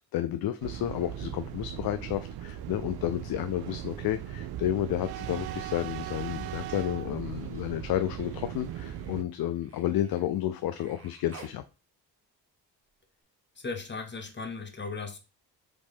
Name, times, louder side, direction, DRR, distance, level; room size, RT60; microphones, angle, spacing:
voice 1, 0.1-11.6, left 12 dB, 60° left, 0.5 m, -31 dB
sound 1, 0.6-9.2, right 11 dB, 60° right, 0.5 m, -38 dB
Human voice, 6.8-11.6 13.2-13.3, right 3 dB, 35° right, 1.3 m, -55 dB
voice 2, 13.6-15.2, left 4 dB, 25° left, 1.0 m, -37 dB
3.9 x 3.1 x 3.5 m
supercardioid pair, 60°, 42 cm